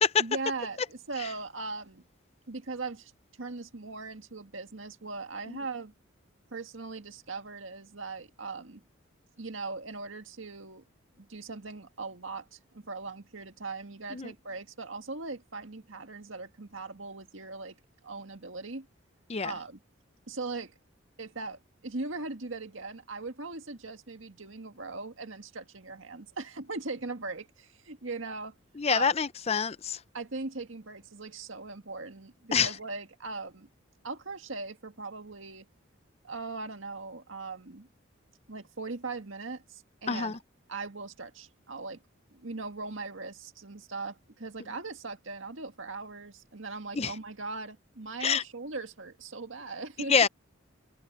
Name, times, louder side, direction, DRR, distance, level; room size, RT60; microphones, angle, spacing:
voice 1, 0.2-2.0 2.5-3.1 3.4-5.9 6.5-8.8 9.4-10.8 11.2-17.8 18.0-18.9 19.4-19.8 20.3-20.7 21.2-28.5 28.9-29.1 30.1-33.7 34.0-35.7 36.2-37.9 38.5-40.4 40.7-42.0 42.3-50.3, right 3 dB, 75° right, 1.9 m, -39 dB
voice 2, 28.8-30.0 32.5-32.7 40.1-40.3 46.9-47.1 48.2-48.4 50.1-50.3, left 6 dB, 30° left, 0.5 m, -26 dB
head